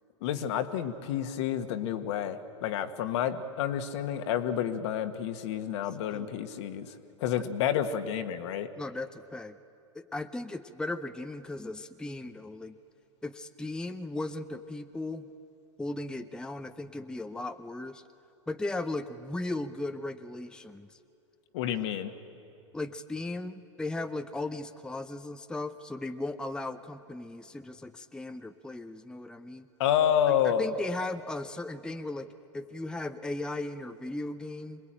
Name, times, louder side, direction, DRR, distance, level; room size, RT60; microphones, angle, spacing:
voice 1, 0.2-6.9 7.2-8.7 21.5-22.1 29.8-30.6, left 9 dB, 60° left, 7 dB, 1.5 m, -29 dB
voice 2, 8.8-9.6 9.9-12.7 13.2-15.3 15.8-18.0 18.5-21.0 22.7-29.7 30.4-32.3 32.5-34.8, left 2 dB, 5° left, 8 dB, 0.7 m, -37 dB
26.0 x 19.5 x 9.0 m, 2.9 s
hypercardioid pair, 95°, 16 cm